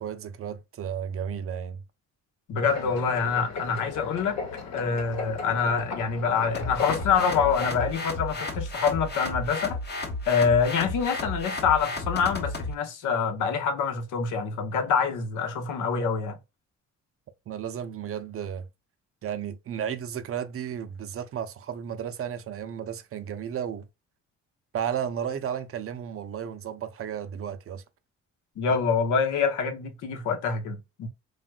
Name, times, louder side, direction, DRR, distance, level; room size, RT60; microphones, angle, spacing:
voice 1, 0.0-1.8 2.5-2.9 17.5-18.7 19.2-23.9 24.7-27.8, right 8 dB, 50° right, 0.6 m, -33 dB
voice 2, 2.5-4.4 4.7-9.8 10.3-16.3 28.6-31.1, left 6 dB, 80° left, 0.9 m, -26 dB
sound 1, 2.7-7.9, left 4 dB, 60° left, 1.0 m, -37 dB
sound 2, 6.5-12.7, left 2 dB, 35° left, 0.8 m, -33 dB
3.3 x 2.4 x 2.2 m
cardioid pair, 90°, 30 cm